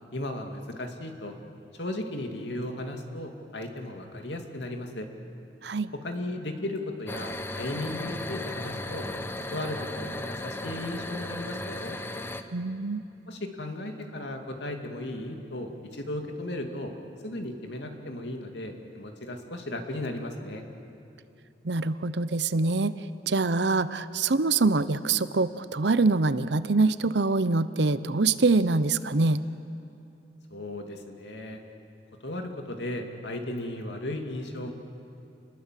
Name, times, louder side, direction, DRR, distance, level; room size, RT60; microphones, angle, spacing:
voice 1, 0.1-1.3 1.7-5.1 6.0-9.1 9.5-12.0 13.3-16.9 17.2-20.6 30.5-31.6 32.2-34.7, left 1 dB, 80° left, 4 dB, 2.4 m, -35 dB
voice 2, 5.6-5.9 12.5-13.0 21.6-22.9 23.3-29.4, right 3 dB, 80° right, 14 dB, 0.8 m, -24 dB
sound 1, 7.1-12.4, left 1 dB, 15° left, 0.9 m, -35 dB
28.0 x 21.0 x 7.6 m, 2.7 s
head